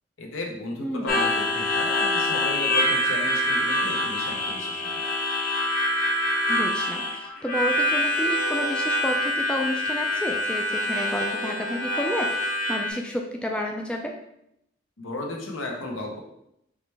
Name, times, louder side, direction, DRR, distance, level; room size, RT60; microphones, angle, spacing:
voice 1, 0.2-5.1 15.0-16.2, left 1 dB, 80° left, 1 dB, 0.9 m, -35 dB
voice 2, 0.8-1.1 6.5-14.1, left 1 dB, 5° left, 1 dB, 0.3 m, -30 dB
Harmonica, 1.1-12.9, left 1 dB, 45° left, 0.8 m, -25 dB
4.9 x 3.2 x 3.3 m, 0.79 s
head